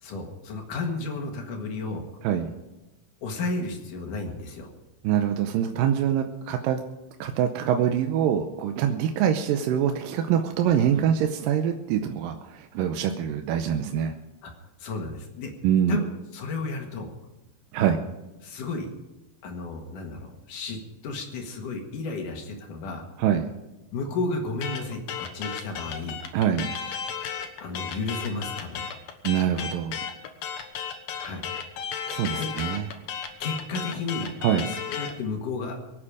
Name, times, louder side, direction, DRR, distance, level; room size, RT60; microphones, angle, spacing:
voice 1, 0.0-2.1 3.2-4.7 14.4-14.5 14.8-15.5 15.9-16.1 16.3-17.1 17.8-18.0 18.4-18.9 19.4-20.8 21.0-23.1 23.9-26.2 27.6-28.9 31.2-31.4 32.3-32.5 33.4-34.3 34.7-35.8, left 3 dB, 65° left, 3 dB, 3.2 m, -32 dB
voice 2, 5.0-6.8 7.2-14.1 15.6-16.0 17.7-18.0 23.2-23.5 26.3-26.8 29.2-30.1 32.1-32.9 34.4-34.7, right 9 dB, 80° right, 6 dB, 2.3 m, -24 dB
sound 1, 24.6-35.2, left 7 dB, 80° left, 3.0 m, -34 dB
24.0 x 8.8 x 4.9 m, 1.0 s
omnidirectional pair, 4.1 m